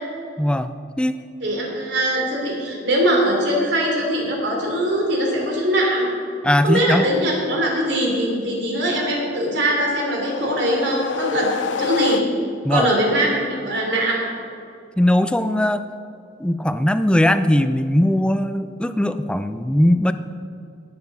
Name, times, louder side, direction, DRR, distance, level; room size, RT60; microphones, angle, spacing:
voice 1, 0.4-0.7 1.0-1.2 6.4-7.1 12.6-12.9 15.0-15.8 16.4-20.1, left 1 dB, 5° left, 11 dB, 0.4 m, -19 dB
voice 2, 1.4-6.1 6.6-11.5 11.8-12.2 12.7-14.2, right 1 dB, 65° right, -1 dB, 3.4 m, -21 dB
sound 1, 9.6-12.7, left 5 dB, 75° left, 0.5 m, -27 dB
18.0 x 6.9 x 5.5 m, 2.4 s
head